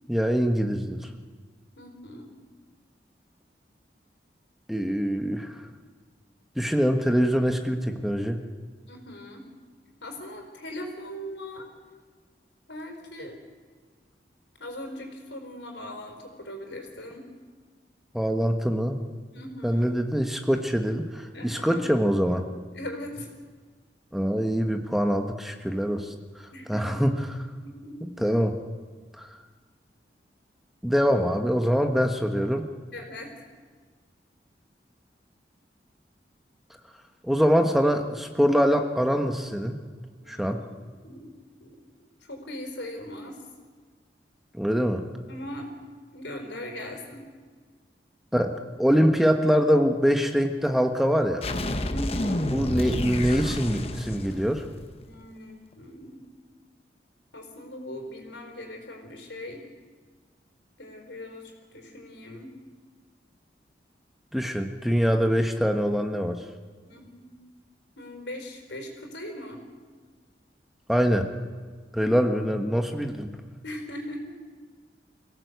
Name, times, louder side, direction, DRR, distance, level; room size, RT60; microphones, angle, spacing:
voice 1, 0.1-1.0 4.7-5.5 6.6-8.4 18.1-19.0 19.6-22.4 24.1-27.4 28.0-28.6 30.8-32.7 37.2-39.8 40.3-40.6 44.6-45.0 48.3-48.5 48.8-51.5 52.5-54.6 64.3-66.4 70.9-71.3 71.9-73.3, equal, ahead, 5 dB, 1.2 m, -24 dB
voice 2, 1.8-2.3 8.9-9.5 10.0-11.7 12.7-13.3 14.6-17.3 19.3-19.9 21.3-21.9 22.7-23.3 26.5-27.0 27.6-28.0 32.9-33.3 40.2-41.3 41.6-41.8 42.3-43.4 45.3-45.7 46.1-47.3 51.9-52.5 55.0-56.2 57.3-59.6 60.8-62.6 66.9-67.3 67.9-69.6 73.6-74.4, left 1 dB, 85° left, 3 dB, 4.7 m, -39 dB
sound 1, 51.4-55.1, left 1 dB, 35° left, 1.1 m, -30 dB
24.5 x 17.0 x 8.1 m, 1.5 s
head